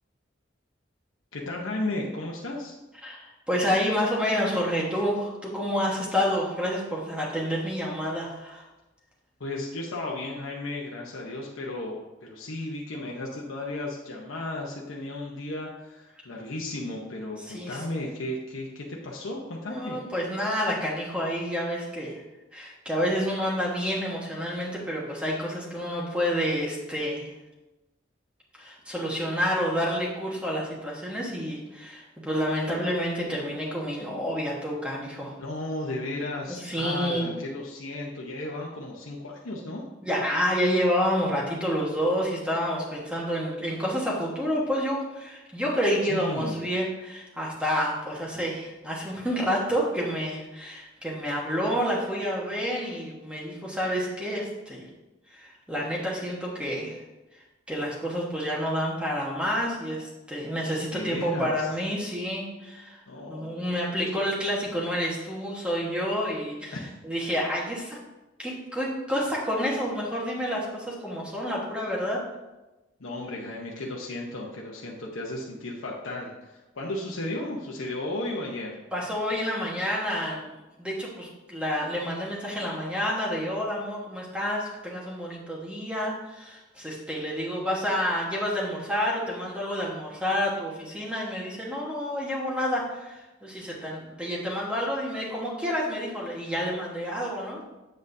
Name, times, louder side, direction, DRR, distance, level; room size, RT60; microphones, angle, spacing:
voice 1, 1.3-2.7 9.4-20.0 35.4-39.9 46.1-46.6 60.9-61.7 63.1-63.7 66.7-66.9 73.0-78.8, left 2 dB, 90° left, -2 dB, 0.9 m, -34 dB
voice 2, 3.0-8.7 17.4-18.1 19.7-22.2 22.5-27.3 28.6-35.4 36.5-37.3 40.0-54.8 55.3-57.0 57.7-63.0 63.3-66.8 67.0-68.0 68.4-72.2 78.9-80.5 80.8-97.6, equal, 5° right, -4 dB, 1.3 m, -29 dB
7.7 x 7.5 x 2.7 m, 1.1 s
head